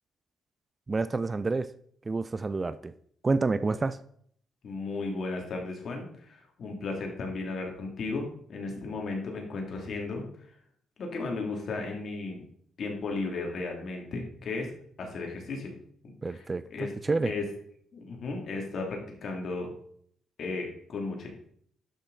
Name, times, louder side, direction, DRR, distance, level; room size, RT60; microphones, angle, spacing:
voice 1, 0.9-1.7 2.1-2.9 3.2-4.0 16.2-16.6 17.0-17.3, right 3 dB, 25° right, 14 dB, 0.4 m, -28 dB
voice 2, 4.6-10.2 11.0-12.4 12.8-14.7 15.0-15.7 16.3-16.5 16.7-16.9 17.2-17.5 17.9-19.7 20.4-21.3, left 3 dB, 55° left, 1 dB, 2.6 m, -35 dB
11.5 x 6.1 x 4.0 m, 0.64 s
cardioid pair, 90°, 0 cm